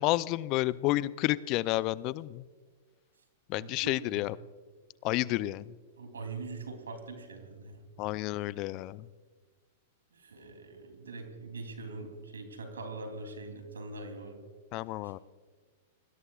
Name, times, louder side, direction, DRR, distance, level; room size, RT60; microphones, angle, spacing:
voice 1, 0.0-2.4 3.5-4.4 5.0-5.7 8.0-9.1 14.7-15.2, left 18 dB, 45° left, 18 dB, 0.5 m, -30 dB
voice 2, 3.6-4.3 6.0-7.8 10.1-14.4 15.0-15.1, right 3 dB, 85° right, 5 dB, 3.2 m, -43 dB
28.0 x 20.0 x 2.4 m, 1.4 s
hypercardioid pair, 105°, 0 cm